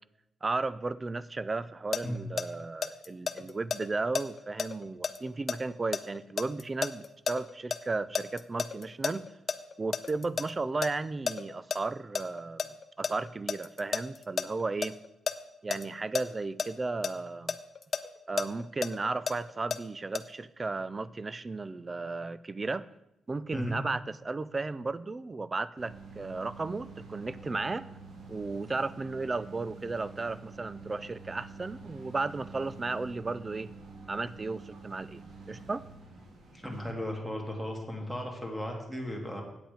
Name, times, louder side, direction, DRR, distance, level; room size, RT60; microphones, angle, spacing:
voice 1, 0.4-9.2 9.8-15.0 15.6-17.6 18.3-22.9 23.3-27.9 28.3-33.7 34.1-35.2 35.5-35.8, right 3 dB, 30° right, 17 dB, 0.4 m, -34 dB
sound 1, 1.9-7.8 8.1-10.5 10.8-10.9 11.3-11.8 12.1-15.3 15.7-15.8 16.1-16.2 16.6-16.7 17.0-19.8 20.2-20.3, left 6 dB, 50° left, 0.6 m, -32 dB
sound 2, 25.8-36.9, right 4 dB, 75° right, 1.9 m, -48 dB
voice 2, 36.5-39.4, equal, 5° right, 1 dB, 2.3 m, -36 dB
8.7 x 7.9 x 5.1 m, 0.86 s
cardioid pair, 95°, 0 cm